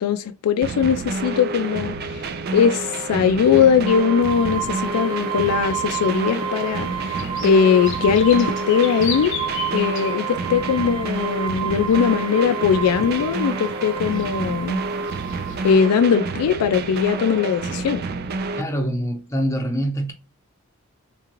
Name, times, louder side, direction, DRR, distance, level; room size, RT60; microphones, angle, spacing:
voice 1, 0.0-9.3 9.7-14.8 15.6-18.0, left 7 dB, 90° left, 0.3 m, -20 dB
sound 1, 0.6-18.6, right 3 dB, 45° right, 0.3 m, -29 dB
sound 2, 3.8-16.3, right 9 dB, 25° right, 0.7 m, -31 dB
sound 3, 4.2-15.7, left 7 dB, 55° left, 0.7 m, -38 dB
voice 2, 18.6-20.1, equal, 15° left, 0.8 m, -25 dB
3.8 x 2.5 x 2.9 m
head